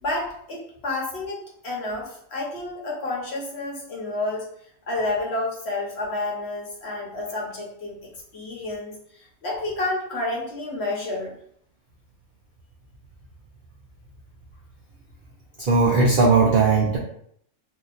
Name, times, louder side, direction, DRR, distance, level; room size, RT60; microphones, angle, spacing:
voice 1, 0.0-4.4 4.9-9.0 9.4-11.4, left 2 dB, 50° left, -2 dB, 1.1 m, -30 dB
voice 2, 15.6-17.0, right 4 dB, 65° right, -2 dB, 0.5 m, -18 dB
2.8 x 2.5 x 3.9 m, 0.66 s
omnidirectional pair, 1.6 m